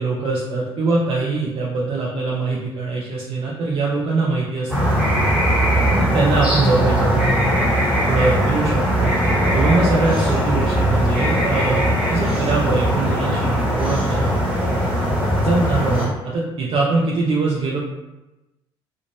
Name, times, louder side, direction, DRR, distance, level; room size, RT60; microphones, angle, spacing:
voice 1, 0.0-4.9 5.8-7.7 8.1-9.2 9.5-14.4 15.4-17.8, right 3 dB, 40° right, -4 dB, 0.6 m, -23 dB
sound 1, 4.7-16.1, equal, 5° right, 1.4 m, -19 dB
2.4 x 2.2 x 3.1 m, 1.0 s
hypercardioid pair, 55°, 13 cm